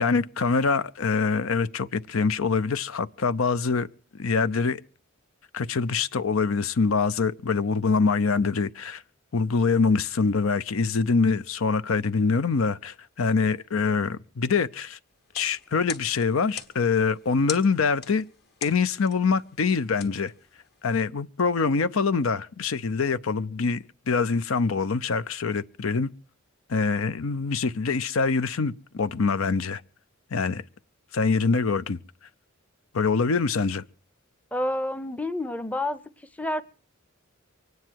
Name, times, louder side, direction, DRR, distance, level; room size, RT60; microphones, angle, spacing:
voice 1, 0.0-3.9 4.2-4.8 5.5-9.0 9.3-15.0 15.3-18.3 18.6-20.3 20.8-26.1 26.7-29.8 30.3-30.6 31.1-32.0 32.9-33.8, left 4 dB, 80° left, 0.6 m, -24 dB
sound 1, 15.2-21.0, left 8 dB, 50° left, 1.6 m, -42 dB
voice 2, 34.5-36.0 36.4-36.6, left 1 dB, 5° left, 0.6 m, -28 dB
24.5 x 9.6 x 4.6 m
head